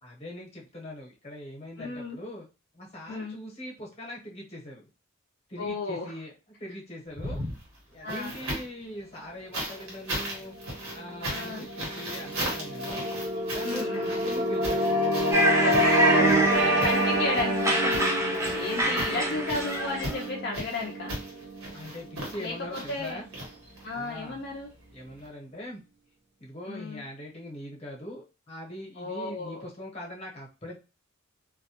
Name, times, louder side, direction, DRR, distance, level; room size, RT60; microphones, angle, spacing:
voice 1, 0.0-2.5 2.7-4.9 5.5-6.3 6.6-7.4 7.9-10.5 10.9-13.1 13.5-14.9 16.2-16.9 18.8-19.4 21.7-23.2 23.9-24.4 24.9-25.8 26.4-30.8, left 1 dB, 30° left, -2 dB, 0.8 m, -41 dB
voice 2, 1.8-2.2 3.1-3.4 5.6-6.1 8.0-8.4 11.3-11.7 13.6-14.1 15.6-16.3 16.7-21.2 22.4-23.2 23.8-24.7 26.7-27.0 29.0-29.7, left 3 dB, 55° left, -1 dB, 0.4 m, -34 dB
sound 1, 7.1-8.8 9.5-24.0 25.2-25.3, right 1 dB, 90° right, 1.0 m, -37 dB
sound 2, 10.4-23.0, equal, 60° right, 0.6 m, -28 dB
sound 3, 15.3-20.2, right 1 dB, 15° right, 0.4 m, -27 dB
2.2 x 2.1 x 2.8 m, 0.31 s
head